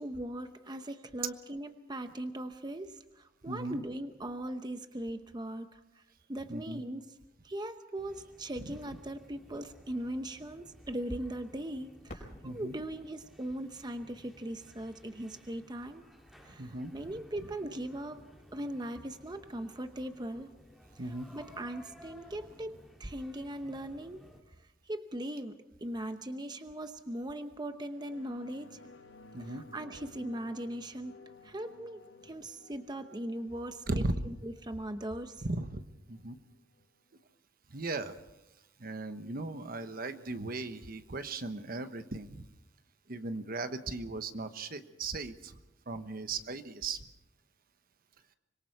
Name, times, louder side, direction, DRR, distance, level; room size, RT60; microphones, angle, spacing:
voice 1, 0.0-5.8 6.3-7.0 7.4-16.1 16.4-18.2 18.5-20.5 21.0-24.3 24.9-28.8 29.4-31.1 31.4-35.5, right 1 dB, 25° right, 8 dB, 0.8 m, -39 dB
voice 2, 3.5-3.8 6.5-6.8 8.6-8.8 12.4-12.7 16.6-17.1 21.0-21.3 29.3-29.6 33.9-34.1 35.4-35.8 36.1-36.4 37.7-38.2 38.8-42.4 43.1-45.6 45.9-47.0, right 2 dB, 50° right, 10 dB, 1.1 m, -37 dB
sound 1, 7.9-24.4, equal, ahead, 2.5 m, -57 dB
Fireworks, 12.1-14.8 15.5-15.6 16.3-16.7 18.6-18.8, left 1 dB, 45° left, 5.2 m, -53 dB
sound 2, 27.8-36.8 37.2-37.3, left 3 dB, 90° left, 1.5 m, -57 dB
25.5 x 22.5 x 4.7 m, 0.92 s
head